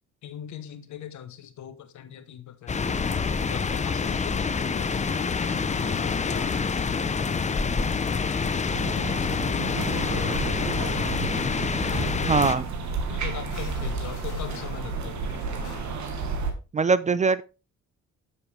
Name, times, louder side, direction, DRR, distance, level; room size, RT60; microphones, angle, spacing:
voice 1, 0.2-3.0 3.5-5.4 5.7-6.7 7.1-7.5 8.0-8.3 8.8-9.5 10.0-11.1 11.9-16.0, left 10 dB, 70° left, 1.1 m, -41 dB
sound 1, 2.7-12.6, left 5 dB, 25° left, 0.6 m, -27 dB
Musical instrument, 5.0-11.8 12.1-12.3 12.6-12.7 13.3-15.8, left 7 dB, 85° left, 1.7 m, -51 dB
sound 2, 8.7-16.5, right 4 dB, 70° right, 1.6 m, -32 dB
voice 2, 12.3-12.6 16.7-17.4, right 4 dB, 25° right, 0.4 m, -21 dB
7.0 x 7.0 x 3.3 m
cardioid pair, 90°, 30 cm